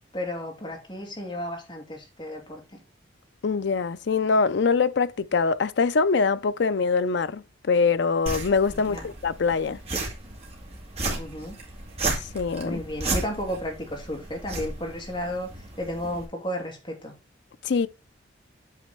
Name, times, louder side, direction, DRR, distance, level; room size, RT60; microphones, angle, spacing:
voice 1, 0.1-2.8 8.7-9.1 11.1-11.6 12.6-17.2, equal, 25° left, 2.5 m, -33 dB
voice 2, 3.4-9.8 12.3-12.8 17.6-17.9, left 4 dB, 60° left, 0.4 m, -23 dB
sound 1, 8.3-16.3, right 2 dB, 30° right, 1.9 m, -34 dB
8.5 x 4.1 x 4.5 m
head